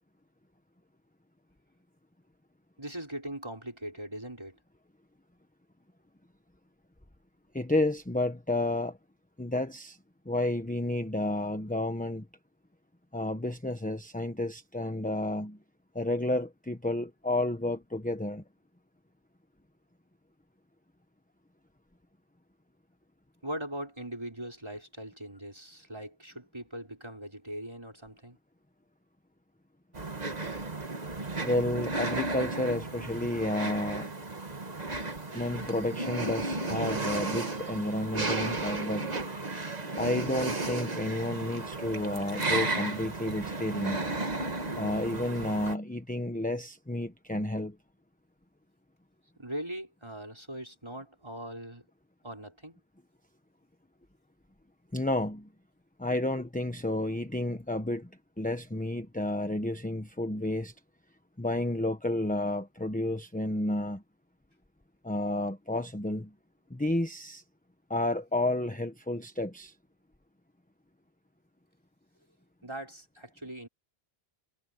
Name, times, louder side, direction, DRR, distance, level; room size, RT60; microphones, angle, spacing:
voice 1, 2.8-4.6 23.4-28.4 49.4-51.9 52.2-52.8 72.6-73.7, right 1 dB, 25° right, 5.4 m, -40 dB
voice 2, 7.5-9.0 9.4-10.0 10.2-12.3 13.1-15.6 15.9-18.4 31.4-34.1 35.3-39.2 40.0-44.0 44.8-47.8 54.9-55.5 56.0-58.1 58.4-60.7 61.4-64.0 65.0-66.3 66.7-67.4 67.9-69.7, left 1 dB, 10° left, 1.1 m, -31 dB
sound 1, 29.9-45.7, right 2 dB, 40° right, 1.8 m, -34 dB
omnidirectional pair, 1.1 m